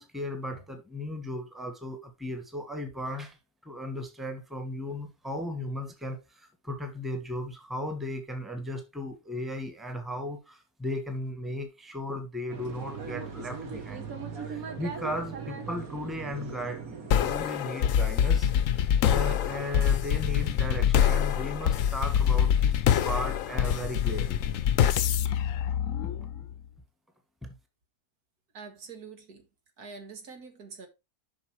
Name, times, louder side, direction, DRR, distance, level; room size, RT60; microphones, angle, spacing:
voice 1, 0.0-3.4 3.6-14.1 14.4-24.4 26.0-26.1 27.4-27.5, left 1 dB, ahead, 1.3 m, -36 dB
sound 1, 12.5-17.5, right 5 dB, 70° right, 2.0 m, -39 dB
sound 2, 17.1-26.5, left 9 dB, 65° left, 1.0 m, -25 dB
voice 2, 28.5-29.5 29.8-30.9, right 5 dB, 85° right, 2.2 m, -45 dB
7.4 x 5.8 x 4.6 m
omnidirectional pair, 1.6 m